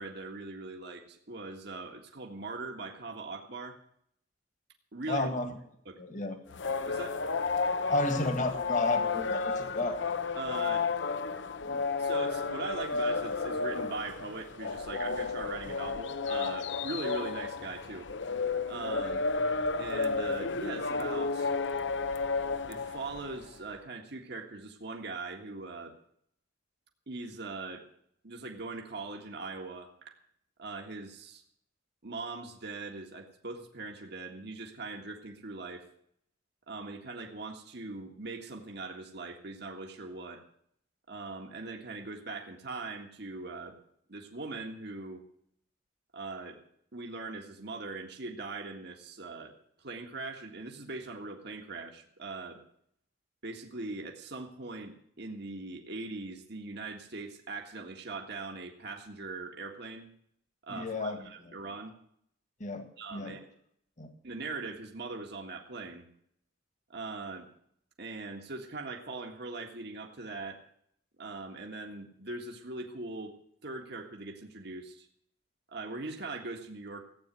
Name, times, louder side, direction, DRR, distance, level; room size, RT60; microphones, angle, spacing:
voice 1, 0.0-3.8 4.9-5.3 5.9-6.0 6.9-7.2 10.4-10.9 11.6-18.1 18.7-19.2 19.8-21.5 22.7-26.0 27.1-27.9 28.2-30.2 30.6-31.4 32.0-35.9 36.7-40.4 41.1-43.8 44.1-45.2 46.1-46.6 46.9-52.6 53.4-60.1 60.7-61.9 63.0-63.5 64.2-66.1 66.9-67.5 68.0-70.6 71.2-73.3 73.6-75.1 75.7-77.0, right 3 dB, 60° right, 2 dB, 1.8 m, -41 dB
voice 2, 5.1-5.5 6.0-6.4 7.9-10.0 60.8-61.3 62.6-63.4 64.0-64.1, left 2 dB, 40° left, 7 dB, 1.9 m, -32 dB
sound 1, 6.5-23.5, left 4 dB, 70° left, 0.9 m, -32 dB
16.0 x 9.1 x 7.6 m, 0.69 s
head